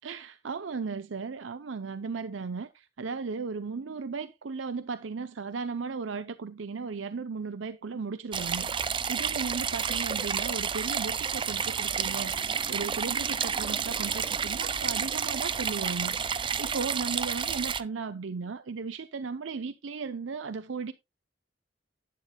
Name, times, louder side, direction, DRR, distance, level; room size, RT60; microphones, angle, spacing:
voice 1, 0.0-20.9, right 4 dB, 80° right, 0.6 m, -36 dB
sound 1, 8.3-17.8, right 6 dB, 25° right, 0.5 m, -30 dB
11.0 x 9.1 x 2.2 m
head